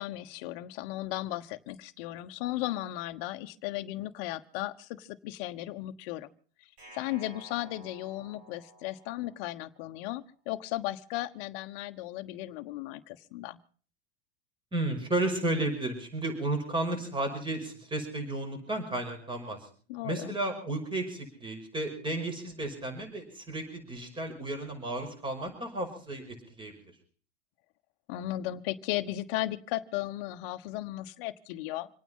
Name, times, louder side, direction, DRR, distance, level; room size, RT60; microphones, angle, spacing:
voice 1, 0.0-6.3 6.9-13.6 19.9-20.4 28.1-31.9, left 15 dB, 60° left, 8 dB, 1.3 m, -36 dB
sound 1, 6.8-9.9, right 2 dB, 85° right, 6.4 m, -53 dB
voice 2, 14.7-19.7 20.0-26.7, right 2 dB, 15° right, 5 dB, 5.5 m, -33 dB
26.5 x 9.3 x 5.5 m, 0.42 s
hypercardioid pair, 110°, 31 cm